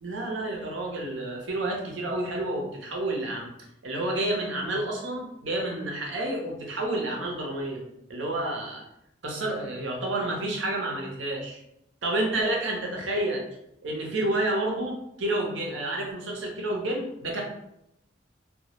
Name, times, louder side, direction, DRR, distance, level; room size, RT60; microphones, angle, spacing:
voice 1, 0.0-3.5 3.8-7.8 8.1-8.8 9.2-11.6 12.0-13.4 13.8-17.4, right 1 dB, 80° right, 0 dB, 0.6 m, -29 dB
2.2 x 2.0 x 2.9 m, 0.80 s
head